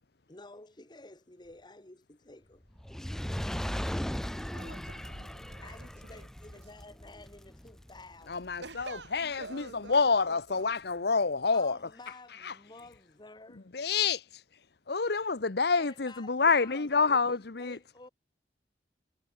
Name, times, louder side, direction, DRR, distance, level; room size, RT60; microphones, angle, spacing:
voice 1, 0.3-2.6 5.6-8.4 11.5-13.7 15.7-18.1, left 2 dB, 25° left, 1.5 m, -52 dB
Fire, 2.8-9.2 9.9-10.0, equal, 5° left, 0.3 m, -38 dB
voice 2, 4.5-5.9 6.1-6.3 8.6-10.7, right 3 dB, 80° right, 6.0 m, -48 dB
voice 3, 8.3-11.8 12.4-12.5 13.7-14.2 14.9-17.8, left 4 dB, 65° left, 0.9 m, -28 dB
head